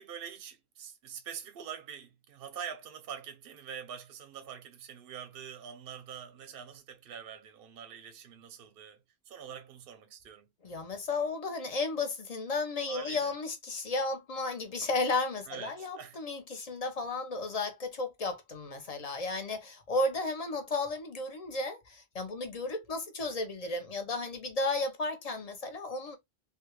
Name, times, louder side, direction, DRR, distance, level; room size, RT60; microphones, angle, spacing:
voice 1, 0.0-10.5 12.9-13.3 15.5-16.2, right 8 dB, 65° right, 0.7 m, -45 dB
voice 2, 10.6-26.2, left 3 dB, 40° left, 0.8 m, -33 dB
3.4 x 2.3 x 3.0 m
omnidirectional pair, 1.1 m